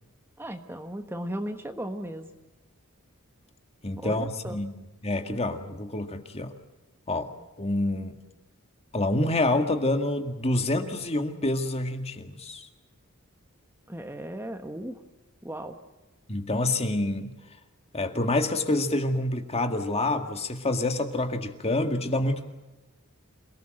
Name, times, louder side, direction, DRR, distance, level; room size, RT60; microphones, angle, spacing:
voice 1, 0.4-2.3 4.0-4.6 13.9-15.0 15.4-15.8, right 1 dB, 10° right, 6 dB, 1.3 m, -36 dB
voice 2, 3.8-4.7 5.0-6.5 7.1-7.3 7.6-8.2 8.9-12.7 16.3-17.3 17.9-22.5, left 2 dB, 30° left, 6 dB, 2.0 m, -27 dB
28.0 x 19.0 x 7.8 m, 1.1 s
head